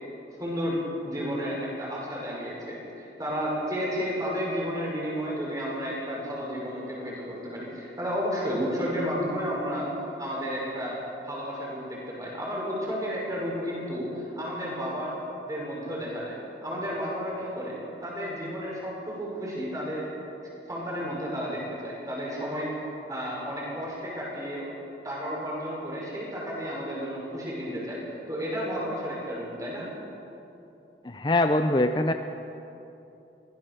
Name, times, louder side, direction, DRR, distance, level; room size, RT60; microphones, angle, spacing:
voice 1, 0.4-9.9 10.2-11.0 11.2-15.2 15.5-16.4 16.6-17.8 18.0-20.1 20.7-22.7 23.1-24.7 25.0-28.0 28.3-29.9, equal, 20° right, -4 dB, 6.1 m, -32 dB
voice 2, 31.0-32.1, left 1 dB, 25° left, 7 dB, 0.6 m, -23 dB
23.5 x 17.5 x 6.9 m, 2.9 s
head